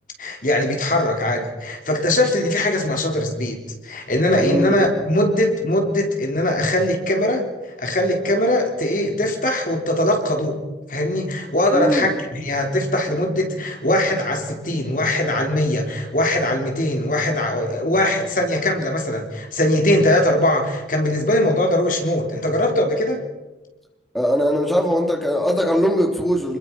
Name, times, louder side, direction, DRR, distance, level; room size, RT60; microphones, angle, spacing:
voice 1, 0.2-7.5 7.8-10.6 10.9-23.2, left 1 dB, 45° left, 3 dB, 3.7 m, -21 dB
voice 2, 4.4-4.8 11.7-12.1 24.1-26.6, equal, ahead, 1 dB, 3.2 m, -20 dB
27.5 x 22.0 x 6.0 m, 1.1 s
head